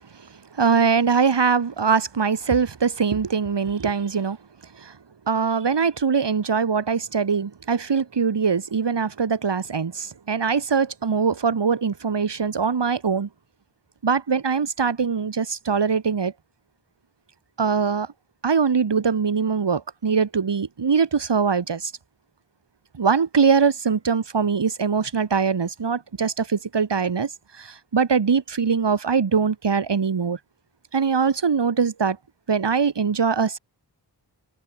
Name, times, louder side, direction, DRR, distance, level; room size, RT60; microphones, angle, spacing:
voice 1, 0.5-4.4 4.8-4.9 5.3-13.3 14.0-16.3 17.6-18.1 18.4-21.9 22.9-27.3 27.6-30.4 30.9-32.2 32.5-33.6, right 5 dB, 80° right, 6.4 m, -22 dB
wide cardioid pair, 95°, 41 cm